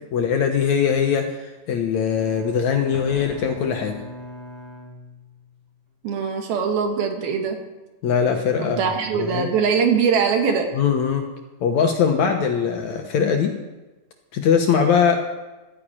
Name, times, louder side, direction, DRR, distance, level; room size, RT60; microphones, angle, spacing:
voice 1, 0.1-1.3 1.7-4.0 8.0-8.8 9.2-9.5 10.8-11.3 11.6-13.5 14.3-15.2, left 7 dB, 65° left, 4 dB, 2.0 m, -21 dB
Bowed string instrument, 2.1-5.7, left 1 dB, 20° right, 3.2 m, -40 dB
Explosion, 2.9-4.6, left 5 dB, 40° left, 1.7 m, -43 dB
voice 2, 6.0-7.6 8.6-10.7, right 6 dB, 80° right, 3 dB, 3.7 m, -22 dB
13.5 x 10.0 x 8.7 m, 1.1 s
omnidirectional pair, 4.3 m